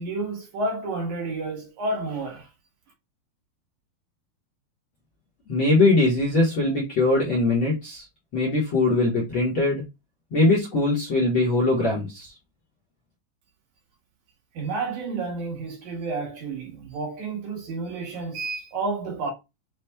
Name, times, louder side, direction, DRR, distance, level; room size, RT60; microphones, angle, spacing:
voice 1, 0.0-2.5 14.5-19.3, right 3 dB, 60° right, 2.5 m, -30 dB
voice 2, 5.5-8.0 8.3-9.8 10.3-12.3, left 2 dB, 50° left, 1.6 m, -21 dB
6.2 x 2.5 x 3.3 m
omnidirectional pair, 4.2 m